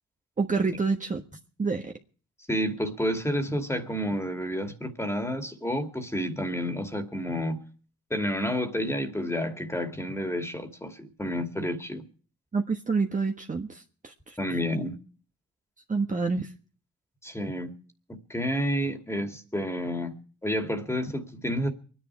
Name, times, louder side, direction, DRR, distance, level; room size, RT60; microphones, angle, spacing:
voice 1, 0.4-1.2 1.6-1.9 12.5-14.4 15.9-16.5, right 4 dB, 25° right, 1.3 m, -28 dB
voice 2, 2.5-7.6 8.1-12.0 14.4-15.0 17.2-17.7 18.1-20.1 20.4-21.7, equal, 10° left, 2.5 m, -30 dB
23.5 x 10.5 x 4.8 m
cardioid pair, 90°, 30 cm